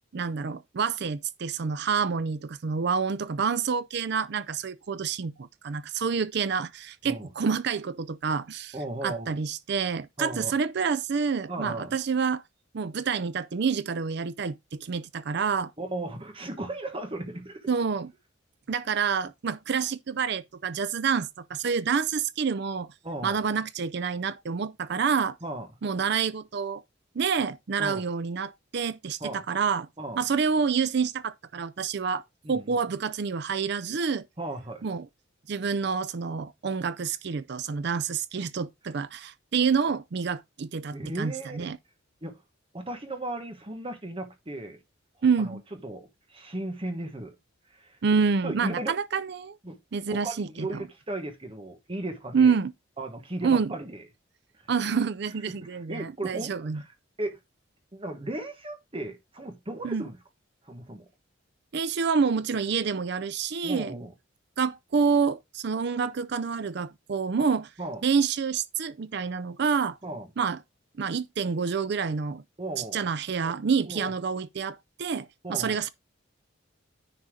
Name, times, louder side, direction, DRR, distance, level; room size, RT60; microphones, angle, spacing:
voice 1, 0.1-8.8 9.0-12.4 12.7-15.7 17.7-18.1 18.7-22.9 23.2-25.4 25.8-26.8 27.1-29.9 30.2-34.3 34.8-35.1 35.5-41.8 45.2-45.6 48.0-49.6 49.9-50.8 52.3-52.7 53.4-53.7 54.7-56.8 59.8-60.0 61.7-63.9 64.6-67.7 68.0-70.0 70.4-70.6 71.0-72.4 72.9-75.9, right 5 dB, 55° right, 0.5 m, -28 dB
voice 2, 8.7-9.3 10.2-10.5 11.5-11.9 15.8-17.7 23.0-23.4 25.4-25.7 27.8-28.0 29.2-29.4 30.0-30.2 32.4-32.8 34.4-34.8 40.9-41.7 42.2-42.4 42.7-44.8 45.4-47.3 47.7-48.0 48.4-49.0 49.6-49.8 50.1-52.6 53.0-54.0 55.5-56.9 57.2-57.4 57.9-60.2 60.6-61.1 63.6-64.1 67.8-68.0 70.0-70.3 72.6-73.0 73.4-73.5 73.9-74.1 75.4-75.8, right 1 dB, 30° right, 1.3 m, -36 dB
9.9 x 4.2 x 4.9 m
head